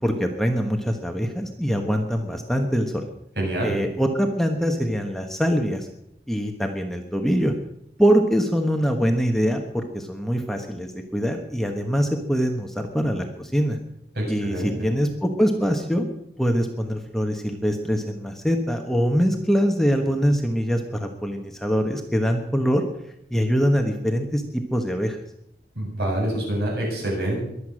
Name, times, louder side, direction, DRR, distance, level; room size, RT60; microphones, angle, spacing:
voice 1, 0.0-3.0 3.6-5.9 6.3-7.5 8.0-13.8 14.3-16.1 16.4-22.8 23.3-24.4 24.7-25.2, equal, ahead, 3 dB, 1.2 m, -23 dB
voice 2, 3.4-3.7 14.2-14.7 25.8-27.5, right 1 dB, 65° right, -2 dB, 7.8 m, -26 dB
22.5 x 8.2 x 6.3 m, 0.78 s
head